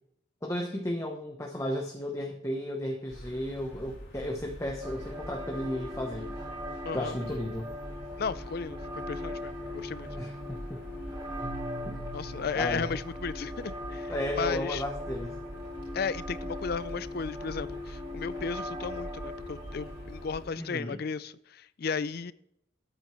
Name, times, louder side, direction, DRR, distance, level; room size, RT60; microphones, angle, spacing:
voice 1, 0.4-6.3 6.9-7.7 10.1-10.8 11.9-12.0 12.5-12.9 14.1-15.4 20.6-21.0, left 1 dB, 15° left, 0.9 m, -34 dB
sound 1, 3.1-20.5, equal, 80° left, 4.4 m, -44 dB
sound 2, 4.8-20.8, left 1 dB, 20° right, 1.4 m, -40 dB
voice 2, 6.8-7.2 8.2-10.1 12.1-14.8 15.9-22.3, left 5 dB, 50° left, 0.4 m, -35 dB
Keyboard (musical), 11.4-14.3, equal, 45° right, 3.7 m, -46 dB
12.5 x 8.7 x 3.1 m
head